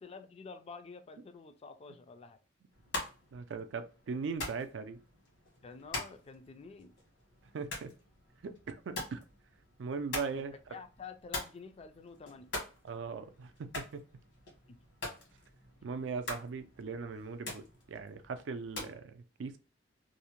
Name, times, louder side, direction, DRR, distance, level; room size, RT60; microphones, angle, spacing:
voice 1, 0.0-2.4 5.6-6.9 10.7-12.5 14.7-14.8, left 4 dB, 35° left, 0.3 m, -49 dB
sound 1, 2.7-19.0, left 2 dB, 75° left, 1.2 m, -45 dB
voice 2, 3.3-5.0 7.5-7.9 8.4-9.2 9.8-10.5 12.8-14.0 15.8-19.6, right 5 dB, 75° right, 0.4 m, -39 dB
2.6 x 2.1 x 2.8 m
head